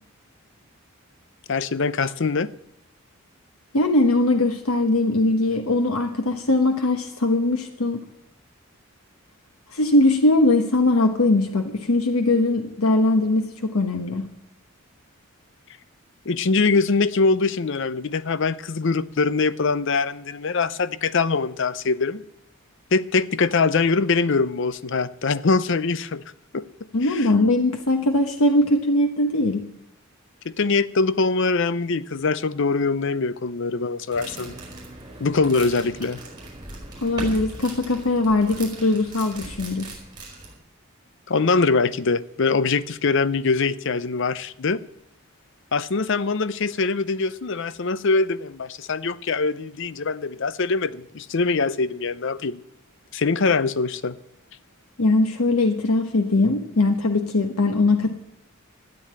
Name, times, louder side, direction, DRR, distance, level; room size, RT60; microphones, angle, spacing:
voice 1, 1.5-2.5 16.3-22.2 22.9-26.2 26.5-26.7 27.0-27.3 30.4-34.5 35.2-36.2 41.3-44.8 45.7-52.6 53.1-54.2, left 4 dB, 60° left, 0.6 m, -23 dB
voice 2, 3.7-8.0 9.7-14.2 26.9-29.6 37.0-39.9 55.0-58.1, left 2 dB, 90° left, 1.2 m, -20 dB
sound 1, 34.1-40.5, right 2 dB, 20° right, 4.7 m, -38 dB
13.0 x 9.5 x 8.7 m
head